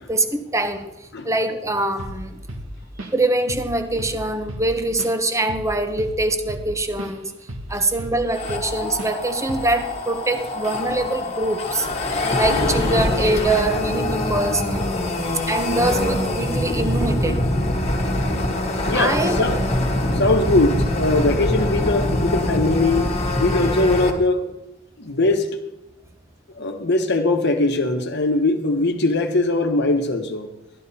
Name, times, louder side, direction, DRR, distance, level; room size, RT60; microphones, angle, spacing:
voice 1, 0.1-0.9 1.2-2.4 3.1-7.3 7.7-11.9 12.3-17.4 18.9-19.4, right 2 dB, 15° right, 1.0 m, -23 dB
Drum kit / Drum, 2.0-2.2 2.5-3.2 3.5-3.7 4.0-7.2 7.5-8.7 9.0-9.2 9.5-9.8, right 1 dB, 80° right, 1.4 m, -34 dB
sound 1, 8.3-24.1, left 1 dB, 35° left, 1.5 m, -24 dB
voice 2, 18.8-19.6 20.1-23.1 23.4-24.4 25.0-25.5 26.6-30.5, left 2 dB, 60° left, 1.2 m, -20 dB
13.5 x 12.0 x 4.2 m
head